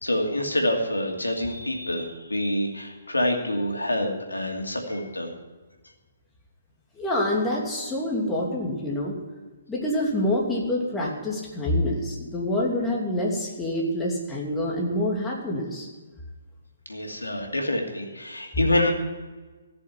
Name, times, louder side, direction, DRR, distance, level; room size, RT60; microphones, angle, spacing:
voice 1, 0.0-5.3 16.9-18.9, left 1 dB, 85° left, 2 dB, 2.6 m, -26 dB
voice 2, 6.9-9.2 9.7-15.9, left 1 dB, 10° left, -4 dB, 3.0 m, -26 dB
15.0 x 6.9 x 9.6 m, 1.3 s
figure-of-eight pair, 130°, 0 cm